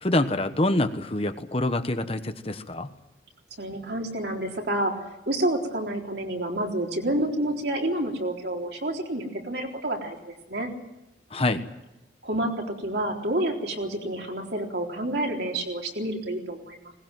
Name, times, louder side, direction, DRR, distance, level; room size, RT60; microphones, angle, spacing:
voice 1, 0.0-2.9 11.3-11.6, left 2 dB, 30° left, 9 dB, 1.1 m, -26 dB
voice 2, 3.6-10.7 12.2-16.9, right 1 dB, 60° right, 1 dB, 3.9 m, -29 dB
20.5 x 19.5 x 9.2 m, 0.98 s
head